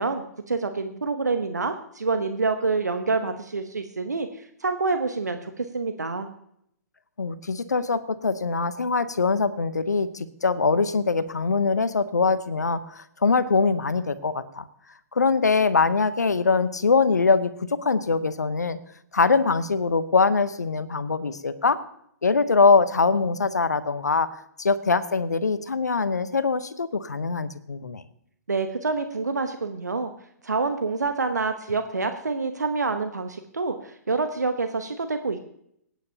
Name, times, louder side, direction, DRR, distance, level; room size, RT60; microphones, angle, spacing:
voice 1, 0.0-6.3 28.5-30.1 30.4-35.4, right 3 dB, 80° right, 7 dB, 0.9 m, -27 dB
voice 2, 7.2-14.7 15.1-18.8 19.1-21.8 22.2-24.3 24.6-28.0, left 4 dB, 80° left, 14 dB, 0.8 m, -23 dB
24.5 x 9.2 x 2.8 m, 0.72 s
figure-of-eight pair, 115°, 9 cm